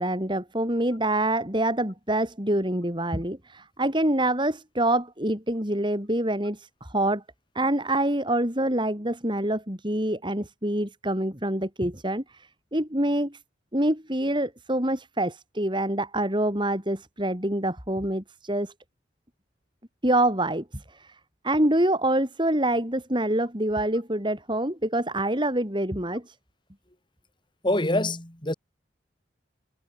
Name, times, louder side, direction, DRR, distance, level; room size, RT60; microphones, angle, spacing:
voice 1, 0.0-7.2 7.5-13.4 13.7-18.7 20.0-21.2 21.4-26.4, right 1 dB, 25° right, 5.7 m, -26 dB
voice 2, 27.6-28.5, left 1 dB, 25° left, 3.4 m, -25 dB
head